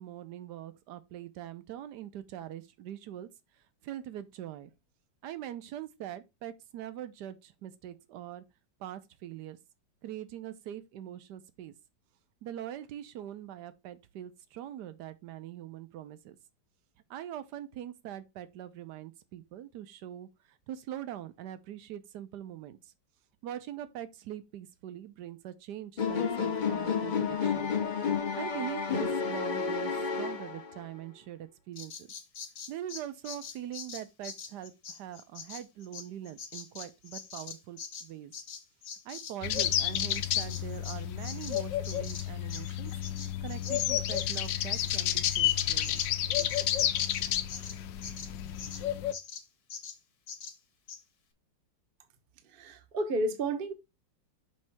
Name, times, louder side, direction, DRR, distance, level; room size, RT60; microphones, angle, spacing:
voice 1, 0.0-3.3 3.8-4.7 5.2-8.4 8.8-9.6 10.0-11.7 12.4-16.4 17.1-22.9 23.4-27.7 28.4-32.1 32.7-38.3 39.0-42.9 43.4-46.0 46.4-46.5, right 11 dB, 70° right, 1.3 m, -43 dB
sound 1, 26.0-30.9, left 6 dB, 40° left, 0.7 m, -31 dB
Bird vocalization bird call bird song, 31.8-39.7 39.9-48.8 49.1-49.4 49.7-50.0 50.3-50.6 50.9-51.0, left 6 dB, 55° left, 1.7 m, -44 dB
sound 2, 39.4-49.1, left 12 dB, 75° left, 1.3 m, -31 dB
voice 2, 52.4-53.7, right 2 dB, 35° right, 0.9 m, -31 dB
6.3 x 3.2 x 5.9 m
omnidirectional pair, 2.0 m